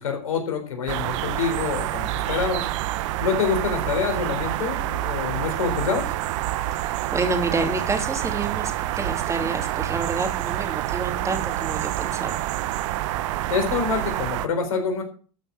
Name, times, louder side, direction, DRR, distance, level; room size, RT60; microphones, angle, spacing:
voice 1, 0.0-2.7 3.2-6.1 13.5-15.0, left 5 dB, 80° left, 4 dB, 4.0 m, -26 dB
sound 1, 0.9-14.5, right 14 dB, 65° right, 0.9 m, -27 dB
voice 2, 6.8-12.5, right 3 dB, 15° right, 3 dB, 2.9 m, -28 dB
13.5 x 6.7 x 6.0 m, 0.39 s
hypercardioid pair, 90°, 17 cm